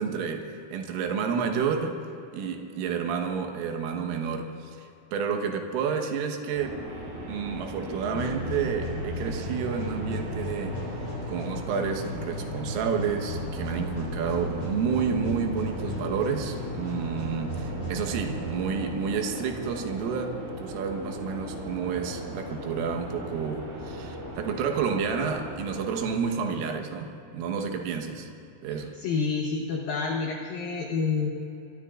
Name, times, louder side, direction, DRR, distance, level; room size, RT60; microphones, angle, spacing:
voice 1, 0.0-2.0 2.3-6.8 7.3-10.8 11.3-28.3 28.6-29.0, right 6 dB, 80° right, 4 dB, 3.8 m, -30 dB
sound 1, 6.5-26.0, right 1 dB, 65° right, 6.5 m, -38 dB
sound 2, 8.1-19.1, left 1 dB, 45° left, 5.4 m, -35 dB
voice 2, 29.0-31.3, left 5 dB, 90° left, 1 dB, 2.0 m, -28 dB
24.5 x 23.0 x 2.5 m, 2.8 s
omnidirectional pair, 5.8 m